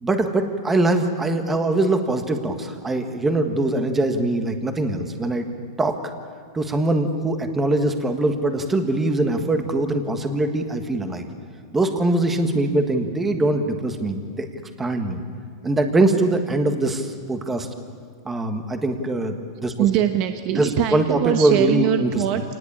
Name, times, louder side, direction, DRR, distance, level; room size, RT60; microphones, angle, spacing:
voice 1, 0.0-5.5 5.8-6.0 6.5-11.3 11.7-14.5 14.8-15.2 15.6-17.7 18.2-19.7 20.6-22.1, right 2 dB, 10° right, 6 dB, 1.5 m, -22 dB
voice 2, 19.8-22.4, right 11 dB, 35° right, 7 dB, 1.1 m, -22 dB
27.0 x 19.5 x 8.8 m, 2.1 s
supercardioid pair, 165°, 2 cm